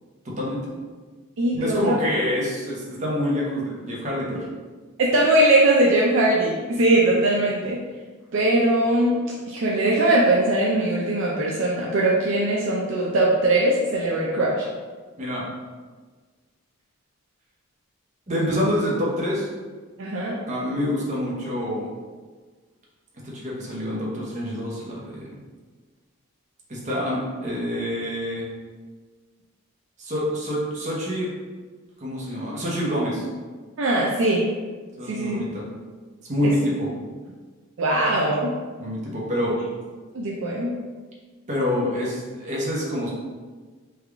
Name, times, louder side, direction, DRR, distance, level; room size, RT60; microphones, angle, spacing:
voice 1, 0.2-0.6 1.5-4.5 15.2-15.4 18.3-19.5 20.5-21.9 23.2-25.3 26.7-28.5 30.0-31.3 32.0-33.3 35.0-35.6 36.3-36.9 38.8-39.6 41.5-43.1, left 1 dB, 35° right, -5 dB, 0.8 m, -26 dB
voice 2, 1.4-1.8 5.0-7.8 8.3-9.1 9.5-14.7 20.0-20.3 33.8-34.4 35.0-35.4 36.4-36.5 37.8-38.5 40.1-40.7, right 1 dB, 60° right, -4 dB, 0.4 m, -20 dB
3.4 x 2.4 x 3.4 m, 1.4 s
head